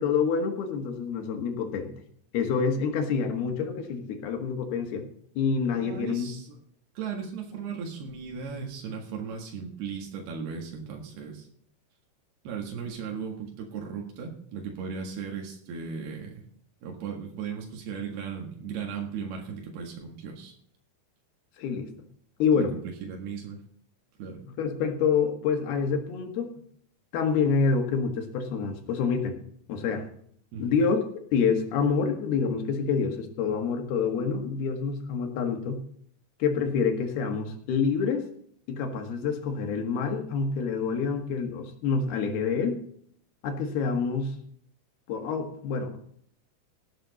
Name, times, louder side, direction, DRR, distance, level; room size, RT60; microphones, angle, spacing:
voice 1, 0.0-1.9 2.3-5.0 5.4-6.3 21.6-21.9 22.4-22.7 24.6-26.5 27.1-29.4 29.7-30.1 30.6-31.0 31.3-35.8 36.4-38.3 38.7-42.8 43.4-44.4 45.1-46.0, left 5 dB, 85° left, 5 dB, 3.6 m, -27 dB
voice 2, 5.7-6.6 7.0-11.5 12.5-16.4 16.8-20.5 22.5-23.6 24.2-24.4 30.5-30.8, right 6 dB, 90° right, 1 dB, 3.8 m, -37 dB
17.5 x 8.9 x 4.1 m, 0.63 s
omnidirectional pair, 4.4 m